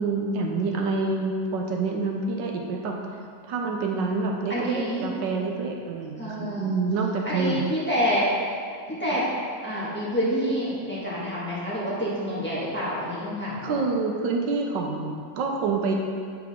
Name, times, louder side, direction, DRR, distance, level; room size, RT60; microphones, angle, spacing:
voice 1, 0.0-2.9 3.4-7.6 13.6-15.9, right 4 dB, 80° right, 1 dB, 1.4 m, -27 dB
voice 2, 4.5-5.1 6.2-6.7 7.2-8.3 8.9-9.3 9.6-13.8, equal, 5° left, -9 dB, 1.3 m, -27 dB
8.0 x 4.7 x 3.6 m, 2.4 s
omnidirectional pair, 1.9 m